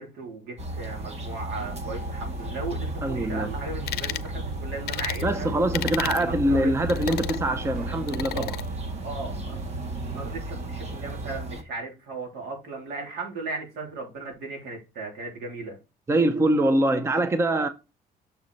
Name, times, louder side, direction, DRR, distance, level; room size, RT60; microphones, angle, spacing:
voice 1, 0.0-5.5 6.0-6.7 8.3-8.5 9.0-9.6 10.1-15.8, right 3 dB, 80° right, 3.3 m, -36 dB
sound 1, 0.6-11.6, equal, 40° right, 1.6 m, -35 dB
sound 2, 1.6-11.4, right 4 dB, 60° right, 1.0 m, -38 dB
voice 2, 3.0-3.5 5.2-8.6 16.1-17.7, right 1 dB, 15° right, 0.6 m, -24 dB
sound 3, 3.9-4.3 4.9-5.2 5.7-6.2 6.9-7.4 8.1-8.6, left 14 dB, 70° left, 0.5 m, -33 dB
6.7 x 4.8 x 4.1 m
cardioid pair, 115°, 17 cm